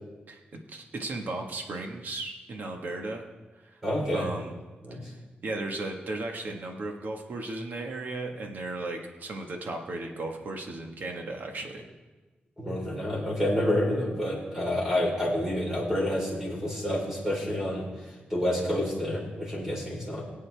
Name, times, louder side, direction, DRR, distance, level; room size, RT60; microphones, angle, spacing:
voice 1, 0.3-3.2 3.7-3.8 4.1-4.6 5.4-11.8, right 2 dB, 60° right, 2 dB, 1.5 m, -35 dB
voice 2, 3.8-4.3 4.8-5.0 12.6-17.8 18.3-20.2, left 1 dB, 15° right, -3 dB, 3.9 m, -28 dB
22.0 x 8.3 x 3.4 m, 1.2 s
wide cardioid pair, 170°, 4 cm